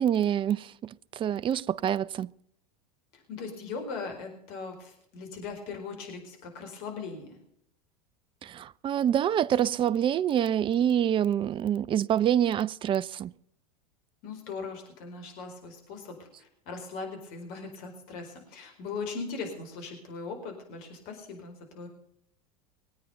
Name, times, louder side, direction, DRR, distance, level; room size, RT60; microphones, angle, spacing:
voice 1, 0.0-2.3 8.4-13.3, right 10 dB, 25° right, 0.5 m, -26 dB
voice 2, 3.1-7.4 14.2-21.9, left 4 dB, 50° left, 4.6 m, -39 dB
22.5 x 9.1 x 5.5 m
hypercardioid pair, 85°, 20 cm